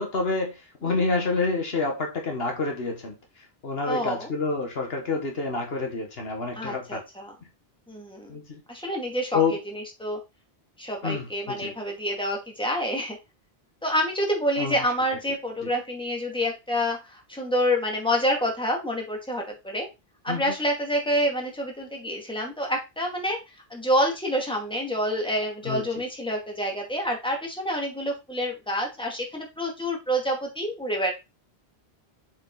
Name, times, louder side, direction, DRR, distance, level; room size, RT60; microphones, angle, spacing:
voice 1, 0.0-3.2 3.6-7.0 8.3-8.6 9.3-9.6 11.0-11.7 14.6-14.8 20.3-20.4 25.6-25.8, left 3 dB, 65° left, 3 dB, 1.6 m, -28 dB
voice 2, 3.8-4.3 6.6-7.4 7.9-8.3 8.7-9.4 9.7-10.2 10.8-13.2 13.8-19.9 20.2-23.4 23.7-31.1, equal, 5° left, 0 dB, 2.2 m, -27 dB
7.3 x 5.0 x 3.9 m, 0.25 s
omnidirectional pair, 1.1 m